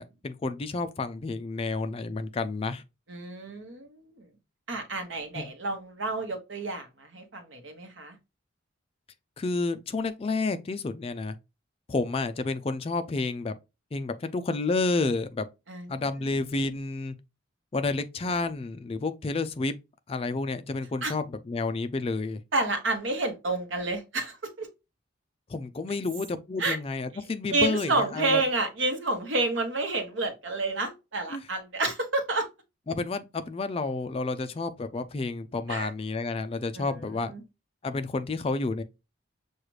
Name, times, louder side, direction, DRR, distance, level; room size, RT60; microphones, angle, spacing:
voice 1, 0.0-2.8 5.3-5.4 9.4-11.4 11.9-13.5 13.9-15.5 15.9-17.2 17.7-19.7 20.1-22.4 25.5-28.4 31.3-31.5 32.9-37.3 37.8-38.8, left 3 dB, 30° left, 0.3 m, -30 dB
voice 2, 3.1-3.9 4.7-8.1 15.7-15.9 21.0-21.1 22.5-24.7 26.6-26.8 27.5-32.5 35.7-35.9 36.7-36.9 37.3-37.4, right 2 dB, 70° right, 1.0 m, -29 dB
6.3 x 2.4 x 3.1 m
head